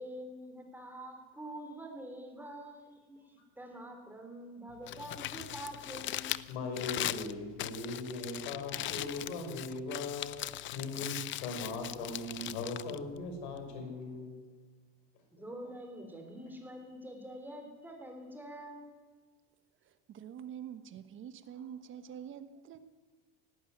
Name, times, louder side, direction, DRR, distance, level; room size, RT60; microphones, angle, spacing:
voice 1, 0.0-6.4 11.3-11.8 15.3-19.0, right 1 dB, 5° right, 3.6 m, -46 dB
Crumpling crinkling, 4.7-13.8, left 14 dB, 35° left, 0.6 m, -40 dB
voice 2, 6.5-10.3 10.7-11.1 11.4-14.4 16.1-16.3, left 3 dB, 85° left, 6.3 m, -39 dB
voice 3, 19.8-22.8, right 9 dB, 35° right, 1.3 m, -46 dB
18.0 x 17.5 x 9.5 m
cardioid pair, 150°, 32 cm